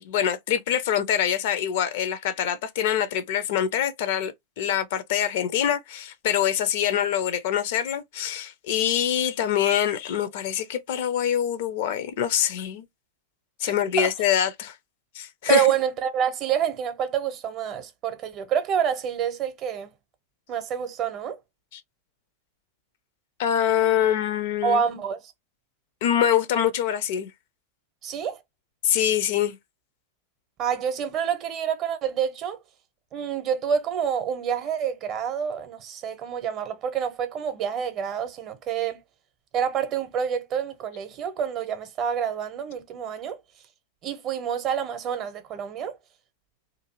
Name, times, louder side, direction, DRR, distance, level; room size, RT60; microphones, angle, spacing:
voice 1, 0.0-12.8 13.6-14.8 15.1-15.7 21.7-21.8 23.4-24.8 26.0-27.3 28.8-29.6, left 10 dB, 50° left, 0.4 m, -24 dB
voice 2, 13.6-14.1 15.5-19.9 20.5-21.4 24.6-25.2 28.0-28.4 30.6-32.6 33.1-39.0 39.5-43.4 44.0-46.0, right 8 dB, 35° right, 0.6 m, -27 dB
2.5 x 2.4 x 2.8 m
figure-of-eight pair, 90°, 0 cm